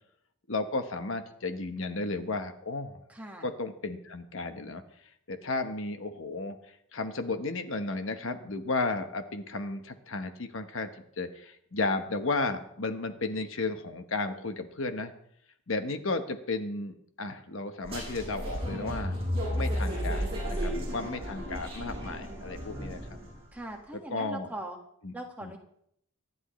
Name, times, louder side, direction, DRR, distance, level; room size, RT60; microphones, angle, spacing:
voice 1, 0.5-3.0 3.4-4.8 5.3-6.6 6.9-10.9 11.2-15.1 15.7-19.2 19.5-23.0 24.1-24.5 25.0-25.1 25.4-25.5, left 3 dB, 60° left, 7 dB, 1.1 m, -33 dB
voice 2, 3.1-3.5 23.5-24.8 25.1-25.6, right 1 dB, 5° right, 1 dB, 1.7 m, -40 dB
sound 1, 17.8-23.4, equal, 25° right, 7.6 m, -33 dB
25.5 x 11.0 x 3.2 m, 0.69 s
head